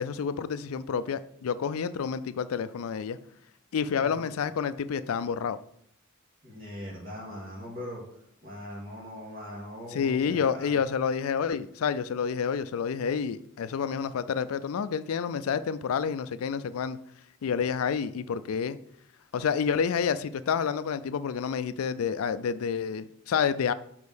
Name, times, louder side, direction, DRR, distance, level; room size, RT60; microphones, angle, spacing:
voice 1, 0.0-3.2 3.7-5.6 9.9-17.0 17.4-18.8 19.3-23.7, left 6 dB, 90° left, 0.4 m, -29 dB
voice 2, 4.0-4.3 6.4-8.0 8.4-10.8, left 1 dB, 45° right, 2.4 m, -41 dB
5.3 x 5.2 x 6.3 m
head